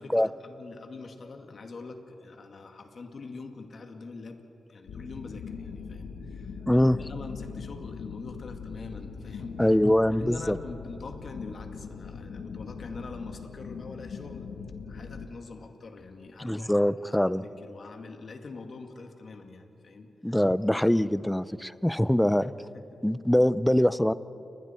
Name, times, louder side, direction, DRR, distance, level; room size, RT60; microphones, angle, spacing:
voice 1, 0.0-4.4 4.7-9.7 10.2-14.5 14.9-16.7 17.0-20.4 22.4-23.0, left 3 dB, 60° left, 5 dB, 2.2 m, -44 dB
sound 1, 4.9-15.3, left 5 dB, 80° left, 1.2 m, -41 dB
voice 2, 6.7-7.0 9.6-10.6 16.4-17.4 20.2-22.5 23.0-24.1, left 1 dB, 5° left, 16 dB, 0.6 m, -23 dB
30.0 x 21.0 x 4.5 m, 3.0 s
cardioid pair, 55°, 0 cm